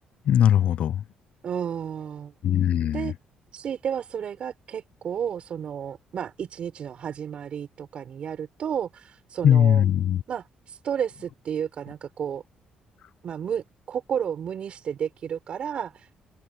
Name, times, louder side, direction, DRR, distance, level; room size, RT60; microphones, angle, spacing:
voice 1, 0.3-1.0 2.4-3.1 9.4-10.2, left 10 dB, 60° left, 0.6 m, -20 dB
voice 2, 1.4-2.3 2.9-3.1 3.5-9.8 10.3-12.4 13.2-16.1, right 8 dB, 50° right, 5.1 m, -32 dB
cardioid pair, 135°, 2 cm